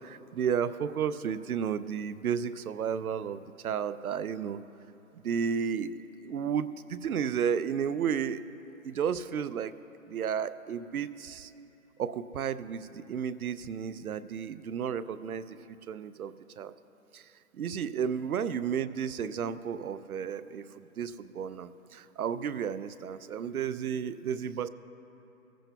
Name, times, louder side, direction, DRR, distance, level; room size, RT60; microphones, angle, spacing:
voice 1, 0.0-4.6 5.2-5.9 6.2-8.4 8.8-9.7 10.1-11.5 12.0-16.7 17.1-17.2 17.5-24.7, right 7 dB, 85° right, 15 dB, 0.6 m, -32 dB
17.0 x 15.0 x 2.3 m, 3.0 s
hypercardioid pair, 180°, 43 cm